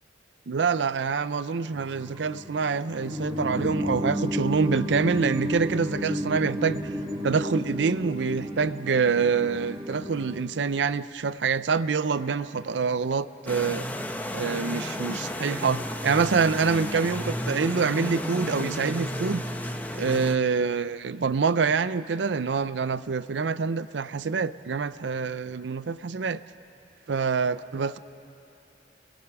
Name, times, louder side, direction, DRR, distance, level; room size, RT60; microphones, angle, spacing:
voice 1, 0.5-6.9 7.2-13.9 14.3-19.4 19.9-26.4 27.1-28.0, right 5 dB, 75° right, 15 dB, 0.5 m, -26 dB
sound 1, 1.7-10.4, equal, 30° right, 1.8 m, -32 dB
sound 2, 13.5-20.4, left 1 dB, 10° left, 0.9 m, -32 dB
28.0 x 21.0 x 6.0 m, 2.9 s
head